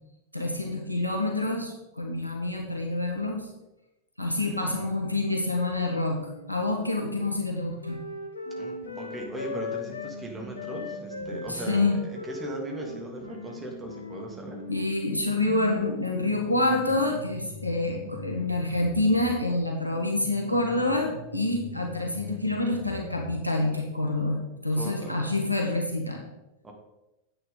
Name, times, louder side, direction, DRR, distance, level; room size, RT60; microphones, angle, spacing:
voice 1, 0.3-3.5 4.2-6.2 6.5-8.0 11.3-12.0 14.7-26.2, left 2 dB, 90° right, 2 dB, 1.6 m, -27 dB
voice 2, 4.4-4.9 8.6-14.6 24.7-25.3 26.6-26.7, right 1 dB, 15° right, 0 dB, 2.5 m, -39 dB
Wind instrument woodwind instrument, 6.2-10.2 10.5-15.0, left 4 dB, 75° left, 1.0 m, -39 dB
sound 1, 8.5-11.7 12.5-19.4 20.0-23.4, left 1 dB, 50° left, 2.8 m, -43 dB
10.0 x 8.6 x 4.0 m, 0.95 s
figure-of-eight pair, 90°, 0 cm